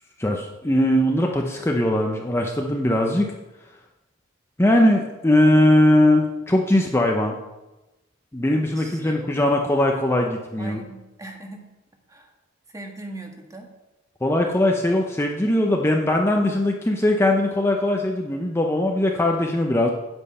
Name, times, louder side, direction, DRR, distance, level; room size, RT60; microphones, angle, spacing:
voice 1, 0.2-3.3 3.6-3.8 4.6-7.4 8.3-10.8 14.2-19.9, left 1 dB, 15° left, 1 dB, 0.7 m, -20 dB
voice 2, 8.8-9.5 10.6-11.7 12.1-12.3 12.7-13.7, right 1 dB, 15° right, 2 dB, 1.5 m, -40 dB
9.2 x 8.4 x 5.6 m, 1.0 s
head